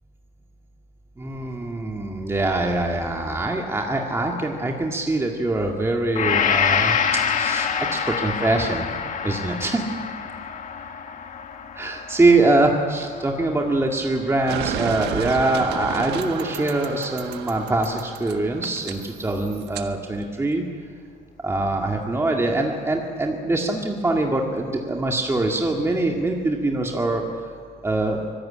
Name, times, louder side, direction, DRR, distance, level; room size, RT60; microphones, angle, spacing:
voice 1, 1.2-7.0 7.3-8.9 9.2-9.9 11.8-20.6 21.4-27.2 27.8-28.2, right 2 dB, 15° right, 1 dB, 2.2 m, -23 dB
Gong, 6.1-14.2, left 7 dB, 50° left, 2.1 m, -26 dB
sound 1, 14.5-19.9, right 9 dB, 85° right, 1.5 m, -32 dB
25.0 x 17.5 x 8.8 m, 2.2 s
cardioid pair, 110°, 17 cm